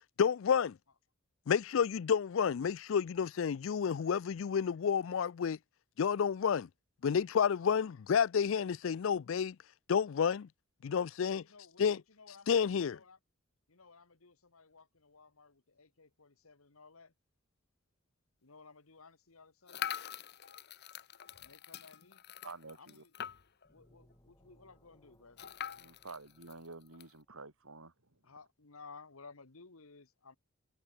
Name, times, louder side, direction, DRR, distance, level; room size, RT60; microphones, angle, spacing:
voice 1, 0.2-0.8 1.5-5.6 6.0-6.7 7.0-9.6 9.9-10.5 10.8-11.4 11.8-12.0 12.5-13.0, left 7 dB, 65° left, 0.4 m, -30 dB
voice 2, 7.6-7.9 11.3-13.2 13.7-17.1 18.4-19.8 21.4-22.2 22.8-23.1 23.7-25.5 28.2-30.4, left 4 dB, 85° left, 1.7 m, -57 dB
sound 1, 19.7-23.7 24.1-24.2 24.4-24.5 25.4-27.1, left 9 dB, 50° left, 0.9 m, -44 dB
voice 3, 22.4-23.0 25.8-28.2, right 3 dB, 85° right, 3.4 m, -50 dB
sound 2, 23.6-27.4, equal, 15° left, 4.7 m, -68 dB
head